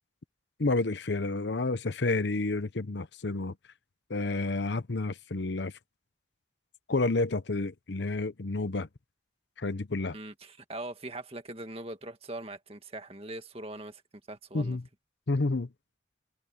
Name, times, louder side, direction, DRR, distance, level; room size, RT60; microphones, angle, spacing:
voice 1, 0.6-3.5 4.1-5.7 6.9-8.9 9.6-10.2 14.5-14.8 15.3-15.7, left 2 dB, 70° left, 0.8 m, -30 dB
voice 2, 10.1-14.0 14.3-14.8, right 2 dB, 30° right, 1.9 m, -41 dB
head